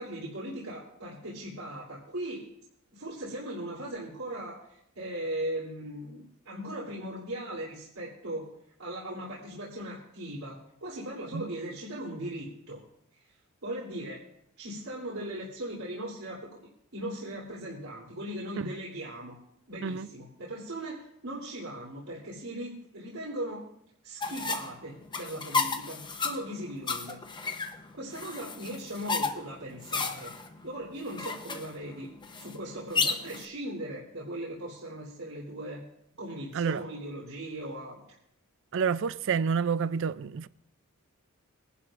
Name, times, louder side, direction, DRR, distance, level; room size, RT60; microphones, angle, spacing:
voice 1, 0.0-2.5 2.9-8.5 8.8-12.8 13.2-13.3 13.6-14.2 14.6-16.5 16.9-19.4 19.7-23.7 24.0-27.2 27.9-30.3 30.6-32.1 32.4-35.8 36.2-38.0, right 1 dB, 75° right, 3.3 m, -38 dB
sound 1, 24.2-33.4, left 4 dB, 20° left, 0.8 m, -33 dB
voice 2, 38.7-40.5, right 6 dB, 60° right, 0.4 m, -29 dB
23.0 x 11.5 x 2.5 m
head